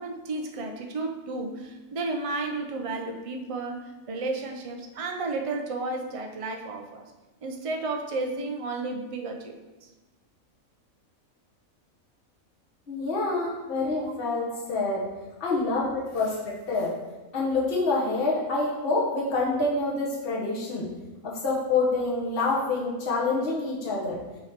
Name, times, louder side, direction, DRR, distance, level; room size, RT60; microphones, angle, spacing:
voice 1, 0.0-7.1 7.4-9.6 9.8-9.9 13.7-14.1 14.5-14.6, right 3 dB, 45° right, 4 dB, 0.4 m, -33 dB
voice 2, 12.9-15.0 15.4-16.9 17.3-20.9 21.2-24.2, left 3 dB, 45° left, -5 dB, 1.4 m, -27 dB
6.7 x 3.1 x 5.1 m, 1.1 s
omnidirectional pair, 1.4 m